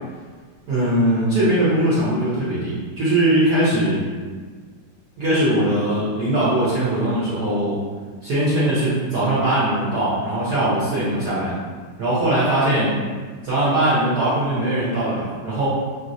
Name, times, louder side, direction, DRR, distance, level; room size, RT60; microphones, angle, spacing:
voice 1, 0.7-4.0 5.2-7.8 8.2-11.6 12.0-13.0 13.4-15.7, right 1 dB, 60° right, -10 dB, 1.2 m, -20 dB
3.2 x 2.9 x 2.5 m, 1.5 s
omnidirectional pair, 2.0 m